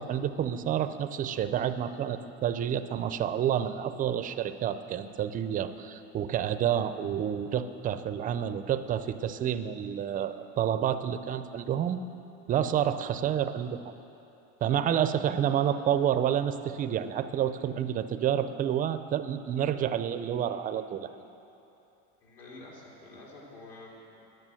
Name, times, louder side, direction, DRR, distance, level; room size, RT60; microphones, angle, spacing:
voice 1, 0.0-12.0 12.5-13.8 14.6-21.1, right 9 dB, 25° right, 11 dB, 0.4 m, -29 dB
voice 2, 22.2-24.3, left 2 dB, 65° left, -4 dB, 3.3 m, -48 dB
10.5 x 9.9 x 7.7 m, 2.8 s
cardioid pair, 145°, 32 cm